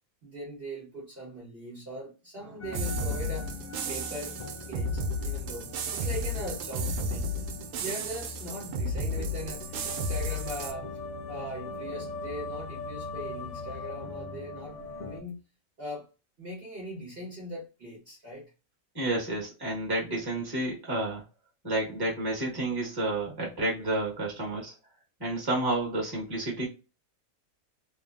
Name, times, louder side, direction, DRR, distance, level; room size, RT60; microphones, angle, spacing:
voice 1, 0.2-3.5 3.9-4.4 4.7-7.4 7.8-11.0 11.3-15.4 15.8-16.1 16.4-18.5, right 1 dB, 45° right, 1.1 m, -40 dB
sound 1, 2.6-15.2, left 3 dB, 85° left, 0.4 m, -41 dB
sound 2, 2.7-10.7, equal, 80° right, 1.1 m, -33 dB
voice 2, 18.9-21.2 21.6-24.7 25.2-26.7, right 2 dB, 15° right, 1.1 m, -30 dB
3.1 x 2.0 x 2.3 m
omnidirectional pair, 1.5 m